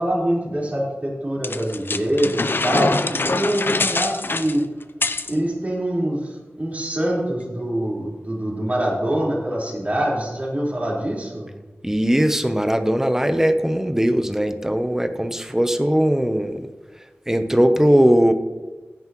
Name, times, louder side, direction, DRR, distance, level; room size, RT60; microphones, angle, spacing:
voice 1, 0.0-4.6 5.3-11.5, right 1 dB, 35° right, -5 dB, 4.3 m, -24 dB
sound 1, 1.4-5.3, left 3 dB, 55° left, 0.6 m, -24 dB
voice 2, 11.8-16.6 17.3-18.3, equal, 10° right, 9 dB, 0.8 m, -19 dB
15.0 x 9.4 x 3.1 m, 1.2 s
wide cardioid pair, 60°, 4 cm